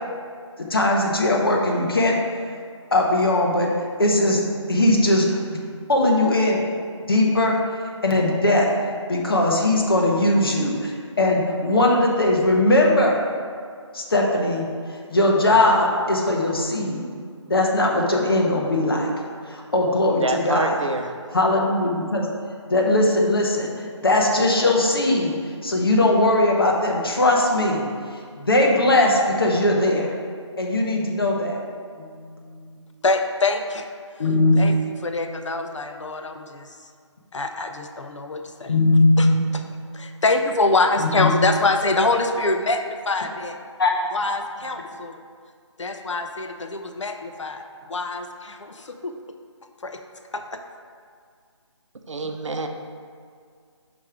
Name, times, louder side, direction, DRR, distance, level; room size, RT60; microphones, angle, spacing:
voice 1, 0.7-2.1 2.9-3.7 4.0-4.4 4.7-5.6 5.9-6.7 7.1-7.6 8.0-8.7 9.1-13.2 13.9-14.7 15.1-17.1 17.5-19.1 19.5-20.8 21.3-22.3 22.7-23.7 24.0-25.3 25.6-27.8 28.3-30.1 30.6-31.6 32.0-32.1 32.5-32.6 34.2-34.6 38.7-39.3 41.0-41.3 43.8-43.9, left 2 dB, 50° left, -1 dB, 1.0 m, -19 dB
voice 2, 20.2-21.1 52.1-52.7, right 3 dB, 75° right, 5 dB, 0.7 m, -26 dB
voice 3, 33.0-33.8 34.6-34.7 35.0-36.7 37.3-38.8 39.2-39.3 39.9-43.6 44.1-45.2 45.8-47.6 47.9-49.1 49.8-50.0 50.3-50.6, left 3 dB, 75° left, 6 dB, 0.6 m, -24 dB
5.2 x 4.8 x 4.9 m, 2.1 s
figure-of-eight pair, 180°, 16 cm